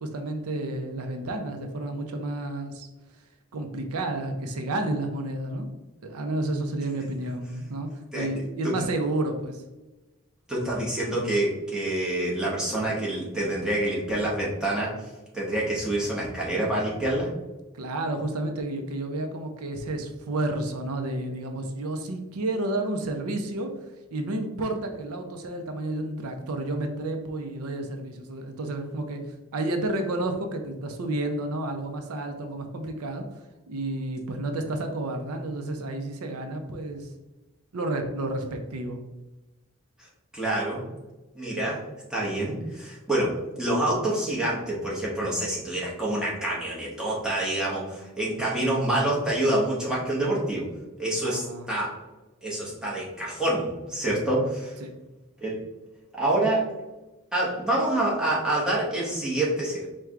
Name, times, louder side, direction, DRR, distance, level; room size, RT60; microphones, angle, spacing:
voice 1, 0.0-2.9 3.2-3.3 3.5-5.7 6.0-7.9 8.1-9.6 17.7-23.7 24.1-33.2 33.7-37.1 37.7-39.0 48.4-48.6 51.2-51.7 54.8-54.9, right 2 dB, 80° right, 5 dB, 0.5 m, -31 dB
voice 2, 10.5-14.9 15.3-17.3 40.3-40.8 41.3-41.8 42.1-50.7 51.0-52.0 52.4-54.7 55.4-55.6 56.1-56.7 57.3-59.9, right 1 dB, 5° right, -6 dB, 0.9 m, -27 dB
4.5 x 2.2 x 3.6 m, 1.1 s
head